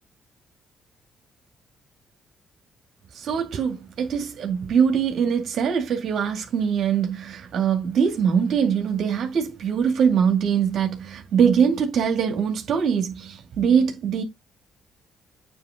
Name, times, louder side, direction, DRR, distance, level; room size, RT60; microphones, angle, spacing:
voice 1, 3.1-14.2, right 7 dB, 70° right, 2.3 m, -22 dB
8.9 x 3.4 x 3.7 m
cardioid pair, 90°, 0 cm